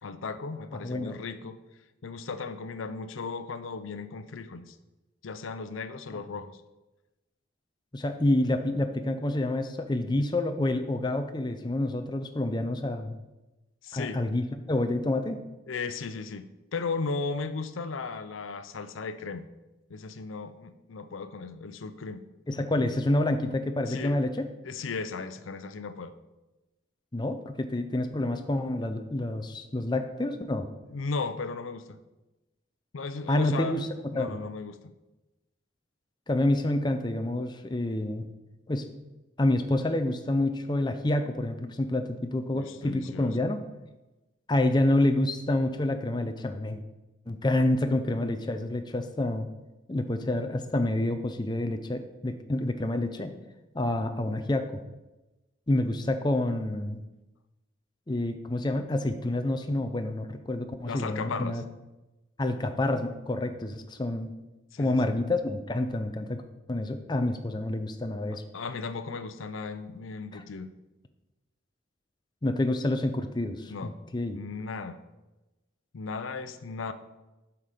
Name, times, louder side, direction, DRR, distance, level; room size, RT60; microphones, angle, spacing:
voice 1, 0.0-1.6 2.0-4.8 5.2-6.6 13.8-14.2 15.7-16.5 16.7-19.5 19.9-22.2 23.9-24.2 24.6-26.1 30.9-32.0 32.9-33.8 34.1-34.8 42.5-43.4 60.8-61.6 64.7-65.1 68.3-70.7 73.7-73.9 74.3-75.0 75.9-76.9, left 4 dB, 85° left, 12 dB, 0.6 m, -36 dB
voice 2, 0.8-1.1 7.9-13.1 13.9-15.4 22.5-24.5 27.1-30.7 33.3-33.9 34.1-34.4 36.3-38.3 38.7-38.9 39.4-43.6 44.5-46.8 47.3-49.5 49.9-53.3 53.7-54.8 55.7-57.0 58.1-61.6 62.4-64.3 64.8-66.4 66.7-68.4 70.3-70.4 72.4-74.4, left 1 dB, 20° left, 7 dB, 0.5 m, -28 dB
8.4 x 5.8 x 5.0 m, 1.0 s
head